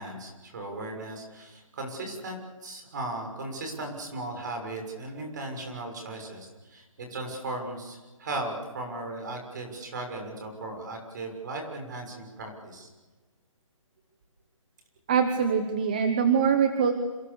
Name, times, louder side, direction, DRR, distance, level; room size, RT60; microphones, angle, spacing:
voice 1, 0.0-12.9, right 2 dB, 35° right, 3 dB, 6.5 m, -37 dB
voice 2, 15.1-16.9, right 6 dB, 15° right, 8 dB, 0.9 m, -23 dB
28.0 x 27.5 x 7.0 m, 1.3 s
hypercardioid pair, 175°, 17 cm